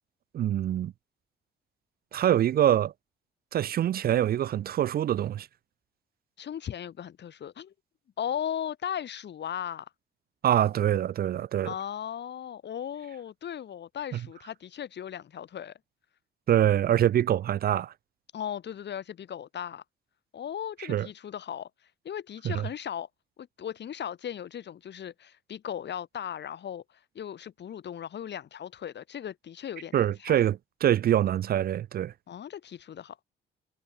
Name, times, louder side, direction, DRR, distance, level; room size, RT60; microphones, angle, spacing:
voice 1, 0.3-0.9 2.1-2.9 3.5-5.5 10.4-11.7 16.5-17.9 20.9-21.1 22.4-22.6 29.9-32.1, right 11 dB, 50° right, 0.4 m, -25 dB
voice 2, 6.4-7.7 8.2-9.9 11.6-15.7 18.3-19.8 20.3-21.7 22.0-23.1 23.4-30.4 32.3-33.2, left 9 dB, 60° left, 4.5 m, -37 dB
cardioid pair, 90°, 20 cm